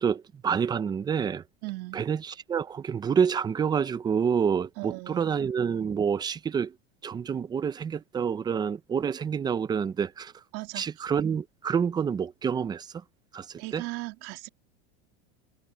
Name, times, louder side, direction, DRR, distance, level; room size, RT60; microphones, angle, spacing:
voice 1, 0.0-1.4 1.9-6.8 7.0-10.4 10.7-13.0 13.3-13.9, right 7 dB, 15° right, 0.6 m, -28 dB
voice 2, 1.6-2.0 4.8-5.3 10.5-10.9 13.6-14.5, right 22 dB, 50° right, 2.2 m, -37 dB
supercardioid pair, 145°, 31 cm